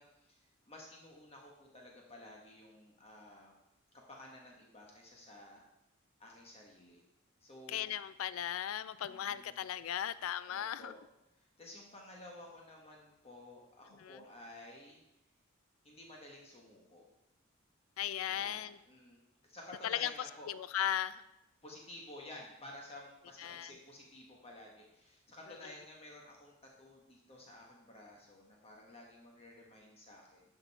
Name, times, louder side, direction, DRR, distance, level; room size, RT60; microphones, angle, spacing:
voice 1, 0.0-3.5 4.1-5.6 6.2-7.0 7.4-7.9 9.1-9.6 10.5-11.0 11.4-15.0 15.8-17.1 18.3-20.5 21.6-30.4, left 1 dB, 30° left, -1 dB, 1.3 m, -53 dB
voice 2, 7.7-10.9 14.0-14.2 18.0-18.8 19.8-20.1 20.5-21.2 23.4-23.7 25.6-25.7, left 10 dB, 80° left, 16 dB, 0.3 m, -37 dB
11.5 x 5.3 x 4.2 m, 0.88 s
head